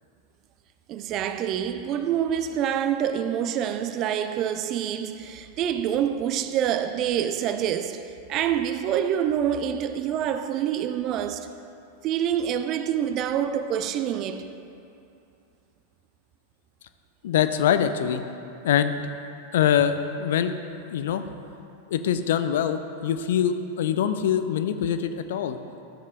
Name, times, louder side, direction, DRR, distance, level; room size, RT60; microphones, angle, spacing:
voice 1, 0.9-11.5 12.0-14.5, right 9 dB, 35° right, 0.4 m, -26 dB
voice 2, 17.2-18.2 18.6-19.0 19.5-20.5 20.9-21.3 21.9-25.6, left 9 dB, 55° left, 0.4 m, -24 dB
13.0 x 7.4 x 2.4 m
figure-of-eight pair, 90°, 0 cm